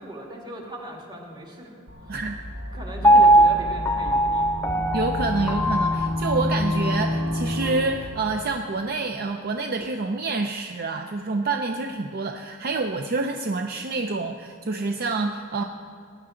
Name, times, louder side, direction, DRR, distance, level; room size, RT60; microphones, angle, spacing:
voice 1, 0.0-1.7 2.1-2.3 2.7-4.5, right 1 dB, 20° right, -1 dB, 2.0 m, -38 dB
sound 1, 1.9-8.2, left 1 dB, 70° right, 2.6 m, -29 dB
Piano, 3.0-7.1 7.6-7.7, right 1 dB, 10° left, 0.8 m, -20 dB
voice 2, 4.9-15.6, right 3 dB, 50° right, 5 dB, 0.5 m, -27 dB
18.0 x 10.5 x 3.8 m, 2.4 s
head